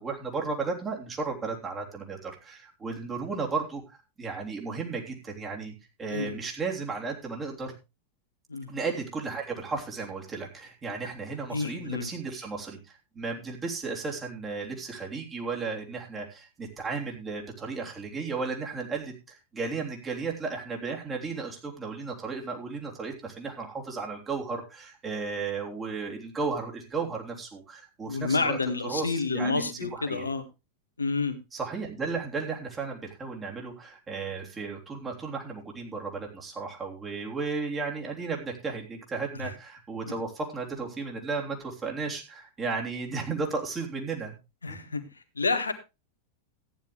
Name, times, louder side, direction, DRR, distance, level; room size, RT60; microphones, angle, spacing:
voice 1, 0.0-5.7 6.0-7.8 8.7-30.3 31.5-44.3 44.6-44.9, right 4 dB, 20° right, 0 dB, 3.2 m, -34 dB
voice 2, 6.1-6.4 8.5-8.7 11.5-12.1 28.1-30.4 31.0-31.4 39.4-39.5 40.0-40.1 44.6-45.7, left 4 dB, 75° left, 8 dB, 1.7 m, -29 dB
14.5 x 10.0 x 3.2 m, 0.26 s
figure-of-eight pair, 90°, 0 cm